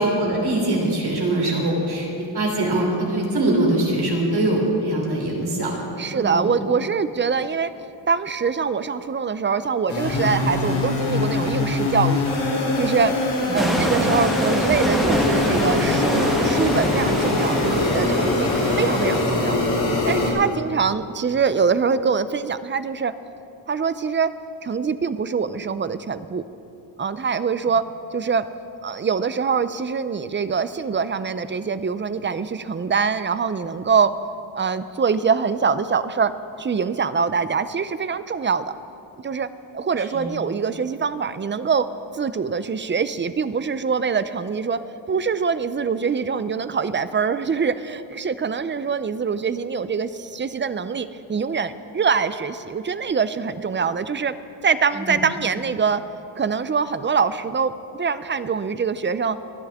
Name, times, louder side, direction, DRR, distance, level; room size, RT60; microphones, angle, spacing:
voice 1, 0.0-5.7 6.1-6.4 13.5-13.8 40.1-40.3 54.9-55.2, right 1 dB, 55° right, -1 dB, 3.3 m, -23 dB
voice 2, 6.0-7.7 8.1-12.3 12.8-13.1 13.5-19.6 20.1-23.1 23.7-24.3 24.6-26.4 27.0-27.8 28.1-28.5 28.8-34.1 34.5-36.3 36.6-38.7 39.2-39.5 39.7-41.9 42.1-44.8 45.1-54.3 54.6-56.0 56.4-59.4, right 5 dB, 25° right, 13 dB, 0.4 m, -24 dB
sound 1, 9.9-20.3, left 2 dB, 90° left, 3.5 m, -23 dB
sound 2, 13.6-19.9, equal, ahead, 1.4 m, -26 dB
sound 3, 15.0-18.6, right 1 dB, 80° right, 2.0 m, -33 dB
25.5 x 10.0 x 3.6 m, 2.7 s
wide cardioid pair, 115°, 45 cm